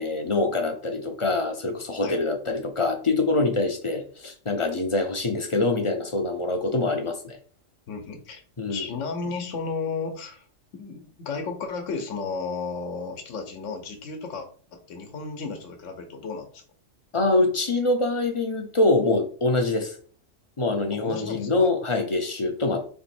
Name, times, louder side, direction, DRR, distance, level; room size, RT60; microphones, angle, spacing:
voice 1, 0.0-7.4 8.6-8.9 17.1-20.0 20.6-22.9, left 2 dB, 35° left, 0.5 m, -24 dB
voice 2, 7.9-8.4 8.7-10.4 10.7-16.6 20.9-21.7, left 4 dB, 70° left, 1.1 m, -33 dB
3.5 x 3.0 x 4.3 m
omnidirectional pair, 1.3 m